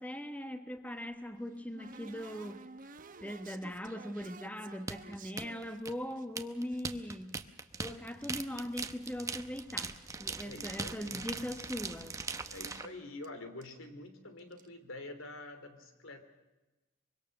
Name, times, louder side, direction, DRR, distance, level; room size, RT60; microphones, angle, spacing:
voice 1, 0.0-2.6 3.2-7.4 7.8-9.9 10.2-12.2, equal, 5° left, 7 dB, 1.2 m, -40 dB
sound 1, 0.8-6.2 6.7-8.5 8.7-9.5 9.8-11.1 11.4-11.5 11.8-12.0 12.3-12.4 13.2-13.3 13.6-13.8 14.4-14.7, right 3 dB, 40° right, 1.0 m, -53 dB
sound 2, 4.9-12.9, right 4 dB, 15° right, 0.9 m, -40 dB
voice 2, 10.4-11.3 12.5-16.2, left 2 dB, 85° left, 8 dB, 3.0 m, -47 dB
24.5 x 23.0 x 6.6 m, 1.1 s
head